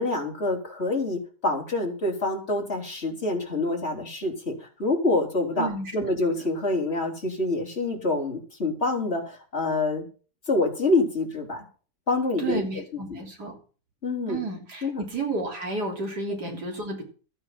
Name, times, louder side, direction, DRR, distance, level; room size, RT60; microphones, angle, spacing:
voice 1, 0.0-10.0 10.5-11.6 12.1-12.8 13.1-13.2 14.0-14.4 14.8-15.0, left 2 dB, 40° left, 0 dB, 3.8 m, -26 dB
voice 2, 5.6-5.9 12.4-13.5 14.3-17.0, right 3 dB, 75° right, 1 dB, 3.9 m, -31 dB
13.0 x 9.4 x 5.9 m, 0.39 s
omnidirectional pair, 1.8 m